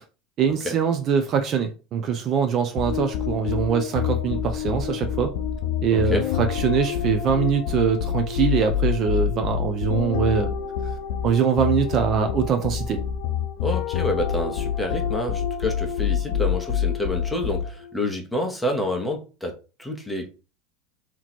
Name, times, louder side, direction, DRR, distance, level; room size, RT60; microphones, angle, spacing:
voice 1, 0.4-5.3 5.8-10.5 11.2-13.0, right 7 dB, 35° right, 0.5 m, -23 dB
sound 1, 2.8-17.9, left 8 dB, 60° left, 0.4 m, -27 dB
voice 2, 5.9-6.3 13.6-20.3, left 1 dB, 5° left, 0.9 m, -28 dB
3.0 x 2.9 x 4.1 m
supercardioid pair, 145°, 0 cm